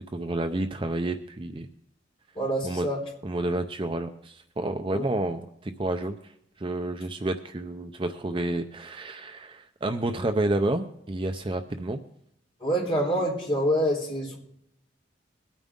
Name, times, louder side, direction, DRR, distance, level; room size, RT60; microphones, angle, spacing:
voice 1, 0.1-1.7 2.6-2.9 3.2-6.3 6.6-12.0, right 2 dB, 25° right, 7 dB, 0.5 m, -30 dB
voice 2, 2.4-3.0 4.9-5.0 12.6-14.4, equal, 30° left, -3 dB, 3.9 m, -26 dB
22.0 x 9.1 x 3.6 m, 0.76 s
head